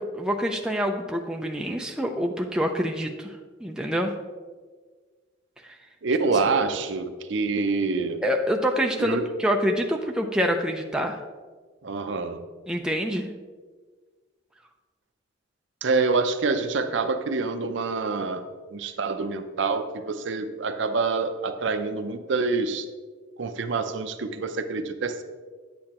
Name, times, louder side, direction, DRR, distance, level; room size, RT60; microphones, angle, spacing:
voice 1, 0.0-4.1 8.2-11.2 12.7-13.3, equal, 5° right, 2 dB, 0.4 m, -26 dB
voice 2, 6.0-8.2 9.0-9.2 11.8-12.4 15.8-18.5 18.7-22.9 23.4-25.2, right 4 dB, 65° right, 8 dB, 0.6 m, -26 dB
8.6 x 8.4 x 3.0 m, 1.4 s
head